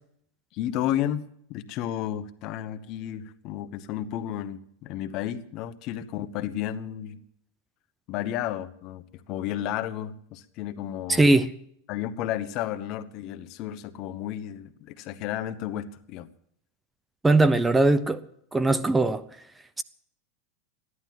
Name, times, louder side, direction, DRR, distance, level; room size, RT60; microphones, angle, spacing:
voice 1, 0.5-7.2 8.1-11.3 11.9-16.3, left 11 dB, 50° left, 1.1 m, -32 dB
voice 2, 11.1-11.5 17.2-18.2 18.5-19.2 19.8-19.9, right 2 dB, 10° right, 0.7 m, -20 dB
15.0 x 11.0 x 7.6 m
hypercardioid pair, 120°, 0 cm